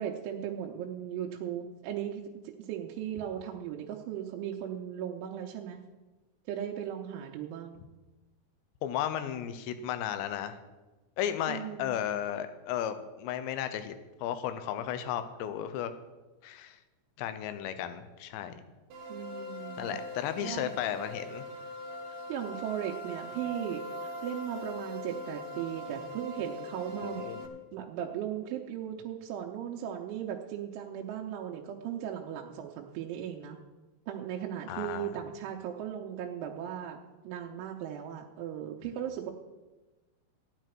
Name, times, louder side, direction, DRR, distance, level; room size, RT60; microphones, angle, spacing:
voice 1, 0.0-2.2 2.6-5.8 6.5-7.8 11.5-12.0 19.1-20.0 20.4-20.7 22.1-27.2 27.7-33.6 34.1-37.0 37.2-39.3, right 10 dB, 85° right, 0 dB, 3.1 m, -37 dB
voice 2, 8.8-10.6 11.2-13.9 14.2-15.9 16.4-16.8 17.2-18.6 19.8-21.4 27.0-27.4 34.7-35.1, left 10 dB, 75° left, 10 dB, 2.9 m, -34 dB
sound 1, 18.9-27.5, equal, 65° right, 3.0 m, -41 dB
15.0 x 10.5 x 4.5 m, 1.2 s
omnidirectional pair, 5.5 m